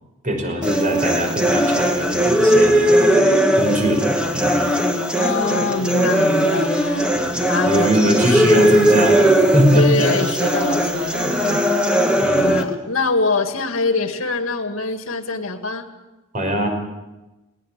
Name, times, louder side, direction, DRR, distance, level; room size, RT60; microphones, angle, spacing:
voice 1, 0.2-4.7 7.2-7.4 7.7-10.1 12.2-12.5 16.3-16.7, equal, 40° right, 4 dB, 5.5 m, -21 dB
sound 1, 0.6-12.6, right 1 dB, 5° right, 2.1 m, -18 dB
voice 2, 5.2-8.8 9.7-11.7 12.3-15.9, left 3 dB, 80° left, 6 dB, 2.1 m, -24 dB
20.0 x 19.5 x 7.5 m, 1.0 s
head